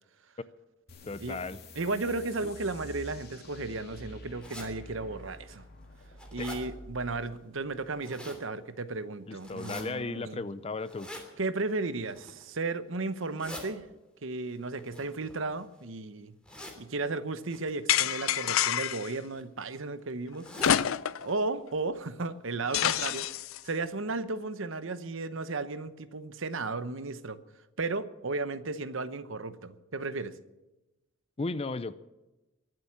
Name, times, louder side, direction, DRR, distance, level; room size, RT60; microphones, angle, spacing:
sound 1, 0.9-8.0, left 1 dB, 50° left, 2.9 m, -48 dB
voice 1, 1.0-1.6 6.4-6.5 9.3-11.1 31.4-32.0, left 3 dB, 30° left, 15 dB, 0.5 m, -35 dB
voice 2, 1.8-5.6 6.3-10.4 11.4-13.8 14.2-16.3 16.8-20.5 21.2-23.3 23.6-27.4 27.8-30.3, right 3 dB, 65° right, 12 dB, 0.9 m, -34 dB
sound 2, 4.4-4.7 5.3-5.4 5.8-6.6 7.7-8.4 9.4-9.8 10.8-11.3 12.0-12.4 13.1-13.6 14.8-15.8 16.4-16.8 17.5-17.7 18.7-19.0 19.3-19.4 19.7-19.8 20.3-20.8 21.2-21.3 21.6-21.7 22.3-22.4 22.7-22.8, left 1 dB, 5° left, 3.1 m, -44 dB
sound 3, 17.9-19.1 20.6-21.3 21.7-21.8 22.7-23.6, left 10 dB, 75° left, 0.5 m, -27 dB
23.0 x 7.7 x 7.3 m, 1.0 s
head